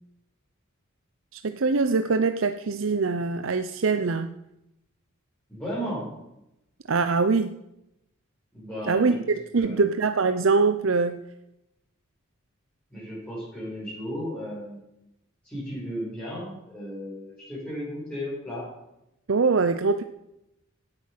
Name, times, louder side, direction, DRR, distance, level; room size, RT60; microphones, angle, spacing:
voice 1, 1.3-4.3 6.9-7.5 8.9-11.2 19.3-20.0, right 4 dB, 70° right, 10 dB, 0.6 m, -23 dB
voice 2, 5.5-6.1 8.5-9.2 9.5-9.9 12.9-14.8 15.4-18.7, equal, 10° left, -10 dB, 6.2 m, -34 dB
17.0 x 8.7 x 5.9 m, 0.87 s
head